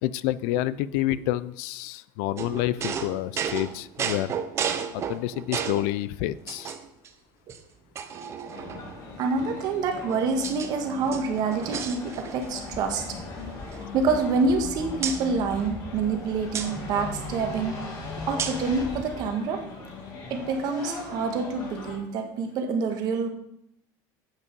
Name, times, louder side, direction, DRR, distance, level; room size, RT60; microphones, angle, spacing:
voice 1, 0.0-4.3 4.9-6.7, left 15 dB, 70° left, 18 dB, 0.4 m, -28 dB
sound 1, 2.4-5.9 6.5-7.1 7.5-7.6 8.0-9.0 9.8-10.7 11.0-12.6 12.8-13.0 13.4-14.6 15.0-15.2 16.5-16.7 18.4-18.7, right 7 dB, 30° right, 0.7 m, -33 dB
sound 2, 8.5-22.0, left 3 dB, 45° left, 2.5 m, -39 dB
voice 2, 9.2-13.2 13.9-17.8 18.3-19.6 20.3-23.3, right 4 dB, 45° right, 4 dB, 1.4 m, -27 dB
sound 3, 11.7-19.3, left 4 dB, 15° left, 0.5 m, -43 dB
8.6 x 5.6 x 5.3 m, 0.75 s
cardioid pair, 155°, 9 cm